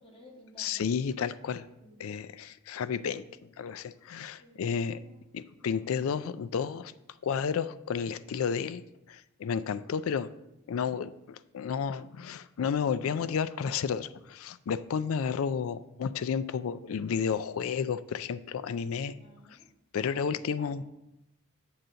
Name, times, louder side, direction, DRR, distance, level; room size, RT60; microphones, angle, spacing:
voice 1, 0.0-0.9 1.6-2.0 4.4-4.6 4.9-5.7 19.1-19.7 20.0-20.8, equal, 25° left, -4 dB, 1.7 m, -54 dB
voice 2, 0.6-1.7 2.0-3.2 3.6-5.0 5.3-6.9 7.2-8.8 9.1-10.3 10.7-19.1 19.9-20.8, left 6 dB, 65° left, 14 dB, 0.3 m, -32 dB
7.7 x 3.9 x 5.6 m, 0.91 s
head